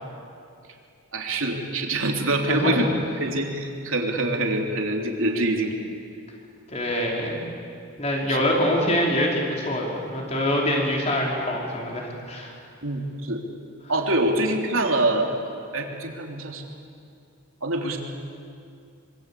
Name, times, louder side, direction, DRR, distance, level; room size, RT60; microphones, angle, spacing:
voice 1, 1.1-5.8 6.9-7.0 8.3-8.4 12.8-13.4 13.9-15.3 15.7-16.6 17.6-18.0, right 2 dB, 70° right, 2 dB, 3.3 m, -25 dB
voice 2, 2.4-2.9 6.7-7.4 8.0-12.6, left 1 dB, 30° left, -1 dB, 4.8 m, -25 dB
25.5 x 25.0 x 8.6 m, 2.4 s
head